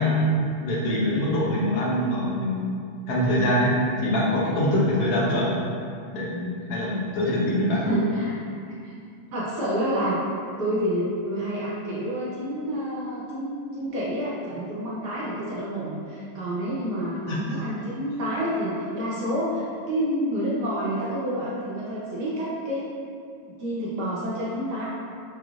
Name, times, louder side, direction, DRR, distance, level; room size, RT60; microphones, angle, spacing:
voice 1, 0.0-2.7 3.1-5.6 6.1-7.9 17.3-17.4, left 1 dB, 70° left, -5 dB, 0.9 m, -24 dB
voice 2, 7.4-8.4 8.8-9.0 9.3-10.2 10.6-22.9 23.6-24.8, equal, 65° right, -7 dB, 1.1 m, -28 dB
4.7 x 2.4 x 3.0 m, 2.3 s
omnidirectional pair, 2.2 m